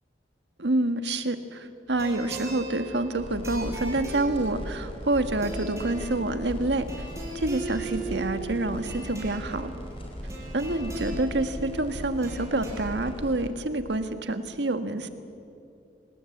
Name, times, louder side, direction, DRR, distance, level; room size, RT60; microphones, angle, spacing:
voice 1, 0.6-6.9 7.3-9.7 10.5-15.1, right 2 dB, 85° right, 8 dB, 1.6 m, -27 dB
sound 1, 1.9-13.0, right 2 dB, 15° right, 5.7 m, -39 dB
sound 2, 3.2-13.4, equal, 30° left, 4.9 m, -38 dB
27.0 x 19.0 x 8.5 m, 2.6 s
head